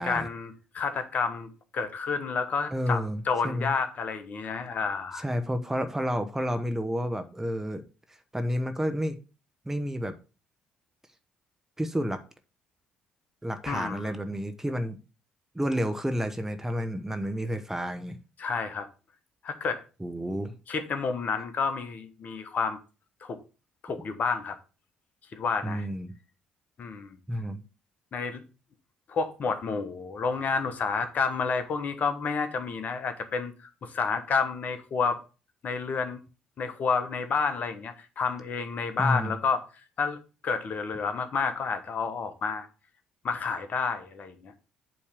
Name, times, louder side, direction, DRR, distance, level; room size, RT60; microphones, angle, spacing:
voice 1, 0.0-5.2 13.7-14.2 18.4-18.9 19.4-19.8 20.7-22.8 23.3-23.4 23.8-24.6 25.3-25.9 26.8-27.2 28.1-28.4 29.1-35.2 35.6-36.2 36.6-39.6 40.0-42.7 43.2-44.5, left 5 dB, 45° left, 1.1 m, -30 dB
voice 2, 2.7-3.7 5.1-7.8 8.3-9.2 9.6-10.2 11.8-12.2 13.4-15.0 15.5-18.2 20.0-20.5 25.6-26.1 27.3-27.6 39.0-39.3, equal, 10° right, 1.1 m, -30 dB
8.5 x 3.3 x 6.6 m
figure-of-eight pair, 50°, 4 cm